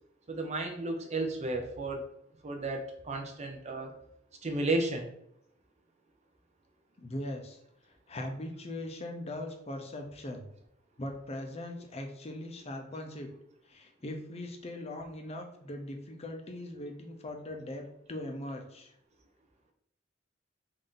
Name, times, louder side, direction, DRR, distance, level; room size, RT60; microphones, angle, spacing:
voice 1, 0.3-2.0 2.4-3.9 4.4-5.1, right 2 dB, 35° right, 2 dB, 0.6 m, -33 dB
voice 2, 7.0-7.6 8.1-10.5 11.0-13.3 13.7-18.9, left 1 dB, 35° left, 3 dB, 0.6 m, -40 dB
3.6 x 2.6 x 3.7 m, 0.75 s
head